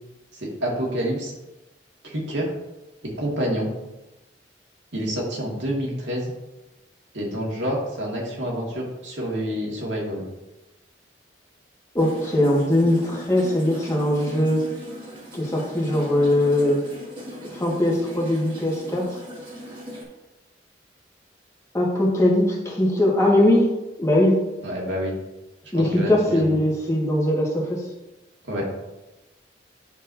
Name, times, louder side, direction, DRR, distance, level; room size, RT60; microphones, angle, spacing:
voice 1, 0.3-1.3 2.0-2.5 3.0-3.7 4.9-6.3 7.1-10.2 24.6-25.1 25.8-26.5 28.4-28.7, equal, 80° right, -3 dB, 2.0 m, -28 dB
voice 2, 11.9-14.6 15.3-16.8 17.4-19.2 21.7-23.7 24.0-24.4 25.7-27.8, left 1 dB, 15° left, -4 dB, 1.6 m, -20 dB
sound 1, 12.0-20.0, equal, 30° right, 1.9 m, -39 dB
10.5 x 4.6 x 2.7 m, 1.0 s
head